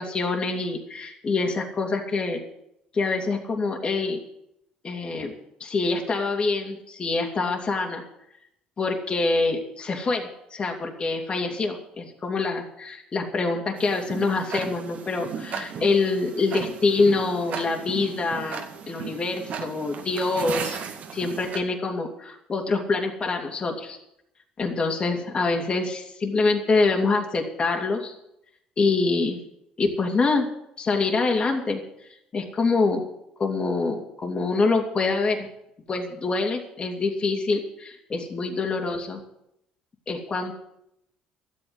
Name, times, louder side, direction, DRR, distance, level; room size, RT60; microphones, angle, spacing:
voice 1, 0.0-2.4 2.9-4.2 4.8-5.3 5.6-8.0 8.8-20.8 21.1-24.0 24.6-28.1 28.8-29.4 29.8-30.5 30.8-31.8 32.3-33.1 33.4-35.5 35.9-39.2 40.1-40.5, left 3 dB, 35° left, 1 dB, 2.9 m, -25 dB
Tick-tock, 13.8-21.6, right 6 dB, 60° right, 1.9 m, -36 dB
12.5 x 8.5 x 9.7 m, 0.79 s
supercardioid pair, 80°, 3 cm